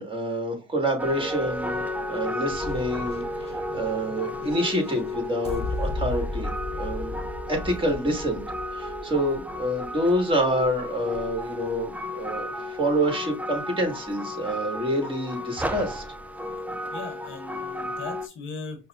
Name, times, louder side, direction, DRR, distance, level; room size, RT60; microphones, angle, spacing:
voice 1, 0.0-1.8 2.1-6.5 6.8-7.2 7.5-8.4 8.7-16.0, equal, 25° right, 1.5 m, -27 dB
sound 1, 1.0-18.3, left 1 dB, 10° right, 0.3 m, -33 dB
sound 2, 2.5-10.5, left 1 dB, 30° left, 0.7 m, -36 dB
voice 2, 16.9-18.9, left 4 dB, 80° left, 1.0 m, -38 dB
5.3 x 2.0 x 2.3 m
cardioid pair, 90°, 20 cm